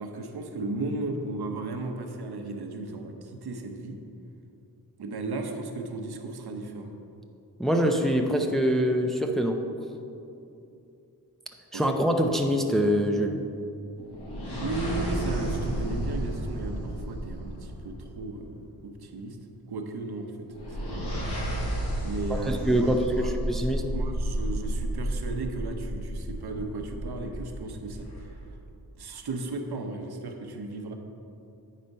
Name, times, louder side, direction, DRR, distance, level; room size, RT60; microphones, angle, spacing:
voice 1, 0.0-4.0 5.0-6.9 11.7-12.0 14.6-19.4 19.7-21.3 22.0-23.3 23.9-28.3 29.0-30.9, right 2 dB, 75° right, 4 dB, 0.8 m, -35 dB
voice 2, 7.6-9.6 11.7-13.3 22.3-23.8, equal, ahead, 3 dB, 0.5 m, -24 dB
sound 1, 14.0-18.4 20.5-28.5, right 1 dB, 85° left, 1.7 m, -32 dB
9.2 x 4.2 x 5.3 m, 2.7 s
wide cardioid pair, 75°, 39 cm